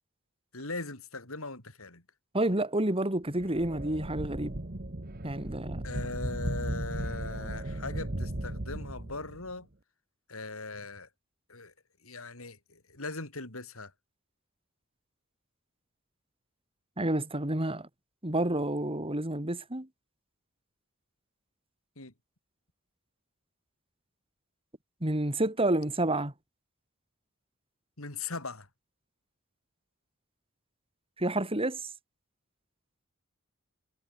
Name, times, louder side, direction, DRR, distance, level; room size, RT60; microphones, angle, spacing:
voice 1, 0.5-2.0 5.8-9.7 10.3-11.1 11.5-11.7 12.0-13.9 22.0-22.1 28.0-28.7, left 3 dB, 75° left, 5.8 m, -40 dB
voice 2, 2.3-4.6 5.2-5.8 17.0-17.9 18.2-19.9 25.0-26.3 31.2-31.8, right 1 dB, 25° right, 3.6 m, -29 dB
sound 1, 3.4-9.5, right 1 dB, 45° right, 1.7 m, -36 dB
head